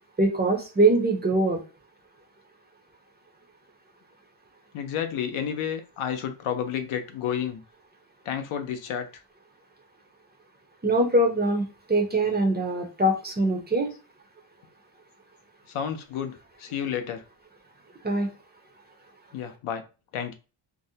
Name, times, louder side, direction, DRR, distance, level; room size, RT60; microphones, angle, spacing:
voice 1, 0.2-1.6 10.8-13.9 18.0-18.3, right 2 dB, 20° right, 0.4 m, -23 dB
voice 2, 4.7-7.6 8.3-9.1 15.7-17.2 19.3-19.8 20.1-20.3, left 8 dB, 80° left, 0.6 m, -31 dB
2.6 x 2.0 x 2.7 m
wide cardioid pair, 135°, 50 cm